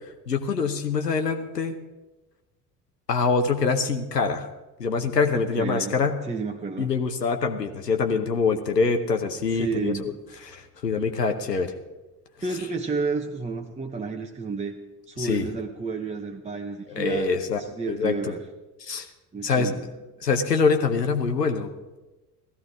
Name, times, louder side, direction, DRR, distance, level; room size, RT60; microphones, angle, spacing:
voice 1, 0.3-1.7 3.1-4.5 4.8-6.1 6.8-9.9 10.4-11.7 15.2-15.5 16.9-17.6 17.9-18.3 18.8-19.1 19.4-19.7 20.2-21.7, left 4 dB, 85° left, 6 dB, 0.9 m, -24 dB
voice 2, 5.3-7.0 9.5-10.2 12.4-14.8 15.1-18.4 19.3-19.9, right 4 dB, 15° right, 3 dB, 0.9 m, -31 dB
16.5 x 14.0 x 3.6 m, 1.1 s
figure-of-eight pair, 60°, 47 cm